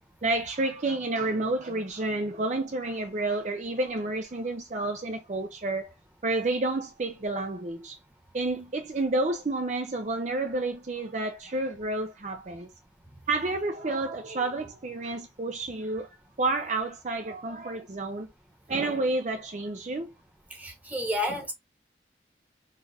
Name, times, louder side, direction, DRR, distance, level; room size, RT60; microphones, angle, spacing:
voice 1, 0.2-5.9 6.2-8.0 8.3-12.7 13.3-16.1 16.4-18.3 18.7-20.1, right 2 dB, 40° right, 0.5 m, -30 dB
voice 2, 20.5-21.5, left 1 dB, 10° right, 1.1 m, -31 dB
4.4 x 2.4 x 3.3 m
head